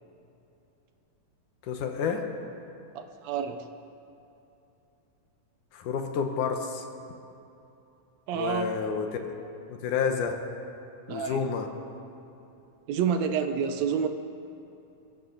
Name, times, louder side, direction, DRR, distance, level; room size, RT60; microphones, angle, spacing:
voice 1, 1.6-2.2 5.7-6.8 8.4-9.3 9.7-10.4 11.1-11.7, left 6 dB, 75° left, 5 dB, 2.3 m, -29 dB
voice 2, 2.9-3.7 8.3-8.7 11.1-11.4 12.9-14.1, right 7 dB, 80° right, 7 dB, 1.6 m, -28 dB
23.0 x 15.0 x 3.9 m, 2.8 s
omnidirectional pair, 3.9 m